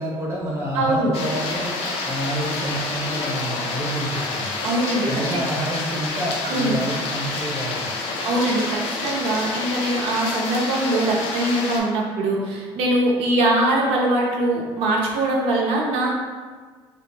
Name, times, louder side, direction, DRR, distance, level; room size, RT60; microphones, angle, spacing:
voice 1, 0.0-1.7 2.1-4.5 5.1-7.9, right 1 dB, 25° right, -4 dB, 0.8 m, -28 dB
voice 2, 0.7-1.1 4.6-5.2 6.4-6.8 8.2-16.1, right 1 dB, 80° right, -3 dB, 0.5 m, -22 dB
sound 1, 1.1-11.8, left 3 dB, 75° left, 0.5 m, -28 dB
3.0 x 2.0 x 3.2 m, 1.5 s
cardioid pair, 135°, 10 cm